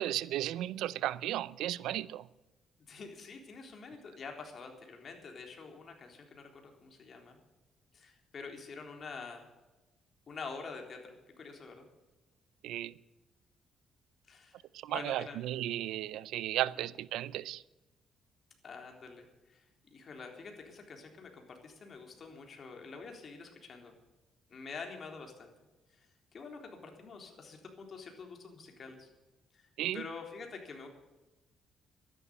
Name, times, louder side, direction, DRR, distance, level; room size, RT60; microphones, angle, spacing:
voice 1, 0.0-2.3 12.6-12.9 14.7-17.6 29.8-30.0, right 13 dB, 90° right, 0.5 m, -34 dB
voice 2, 2.9-7.4 7.9-9.5 10.3-11.9 14.3-14.6 14.9-15.4 18.6-19.6 19.9-23.9 24.5-25.5 26.3-29.1 29.5-29.6 29.9-30.9, left 4 dB, 50° left, 3.7 m, -47 dB
13.0 x 11.0 x 8.0 m
cardioid pair, 90°, 0 cm